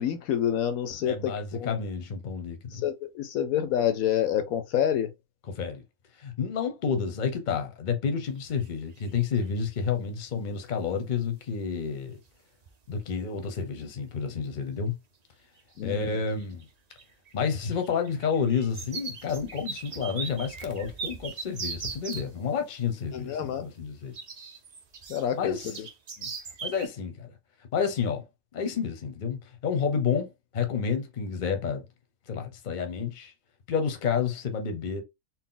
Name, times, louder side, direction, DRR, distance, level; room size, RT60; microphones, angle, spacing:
voice 1, 0.0-1.7 2.7-5.1 15.8-16.1 23.1-23.7 25.1-25.6, left 9 dB, 75° left, 1.0 m, -28 dB
voice 2, 1.1-2.8 5.5-5.8 6.2-12.2 12.9-15.0 15.8-16.7 17.3-24.1 25.3-25.9 26.6-27.3 27.7-28.2 28.5-31.8 32.3-33.3 33.7-35.0, left 6 dB, 40° left, 0.8 m, -30 dB
sound 1, 8.4-8.7 9.0-9.6 11.5-11.6 12.3-12.4 12.6-13.0 13.3-13.9 14.4-14.5 15.6-16.0 16.3-22.3 24.1-26.9, right 5 dB, 65° right, 0.4 m, -39 dB
4.2 x 2.1 x 3.8 m
omnidirectional pair, 1.6 m